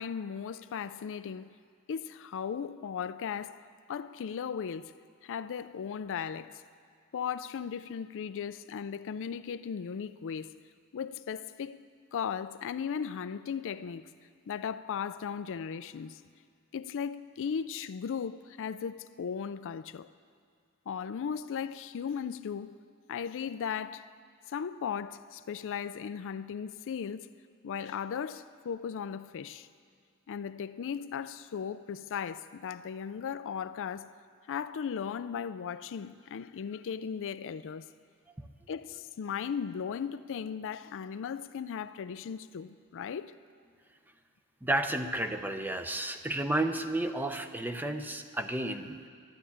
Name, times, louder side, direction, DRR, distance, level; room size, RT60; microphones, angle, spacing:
voice 1, 0.0-1.6 1.9-3.6 3.9-4.9 5.2-6.6 7.1-10.5 10.9-11.8 12.1-14.1 14.5-16.2 16.7-20.1 20.9-22.7 23.1-24.1 24.5-27.3 27.6-29.7 30.3-34.1 34.5-37.9 38.7-43.4, left 7 dB, 60° left, 0.4 m, -37 dB
voice 2, 44.6-49.0, right 1 dB, 10° right, 0.6 m, -32 dB
12.0 x 11.5 x 8.5 m
head